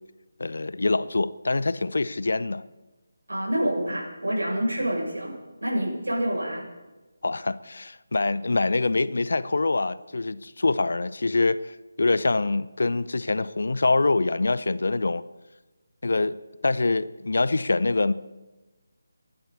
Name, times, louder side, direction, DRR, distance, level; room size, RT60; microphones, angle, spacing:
voice 1, 0.4-2.6 7.2-15.2 16.0-16.4 16.6-18.1, left 3 dB, 55° left, 0.7 m, -25 dB
voice 2, 3.3-6.7, right 1 dB, 70° right, 7.0 m, -27 dB
30.0 x 11.5 x 4.2 m
figure-of-eight pair, 155°, 0 cm